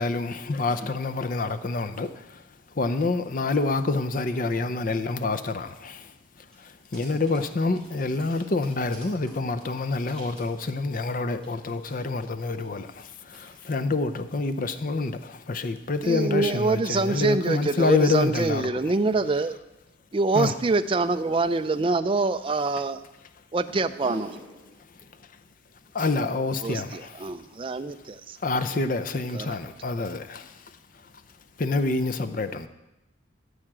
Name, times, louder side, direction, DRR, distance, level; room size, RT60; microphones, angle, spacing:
voice 1, 0.0-2.1 2.8-6.0 6.9-12.9 13.7-15.2 15.5-18.7 20.3-20.6 25.9-27.0 28.4-30.4 31.6-32.7, left 3 dB, 40° left, 10 dB, 0.5 m, -27 dB
voice 2, 9.9-10.3 11.9-12.0 13.3-13.7 24.0-24.9, equal, 5° left, -7 dB, 2.8 m, -45 dB
voice 3, 16.0-19.5 20.1-23.0 23.5-24.3 26.6-28.4 29.3-29.5, right 3 dB, 25° right, 10 dB, 0.4 m, -25 dB
14.0 x 4.9 x 7.5 m, 0.94 s
head